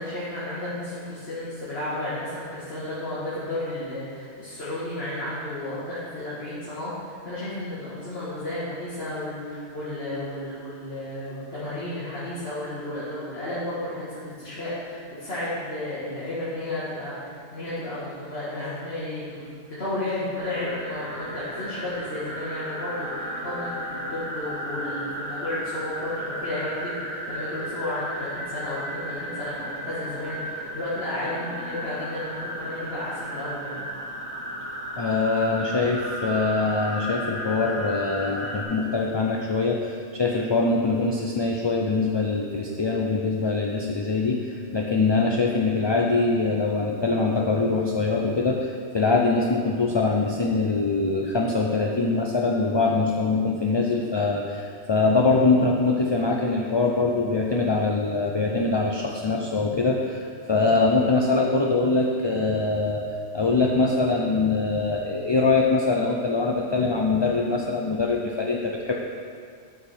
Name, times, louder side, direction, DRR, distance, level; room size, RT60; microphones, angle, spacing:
voice 1, 0.0-33.9, left 1 dB, 55° left, -10 dB, 2.2 m, -33 dB
sound 1, 20.4-38.6, equal, 75° right, 1.6 m, -34 dB
voice 2, 35.0-63.0 63.3-68.9, left 3 dB, 35° left, -1 dB, 0.5 m, -23 dB
12.0 x 5.3 x 4.5 m, 2.1 s
omnidirectional pair, 1.2 m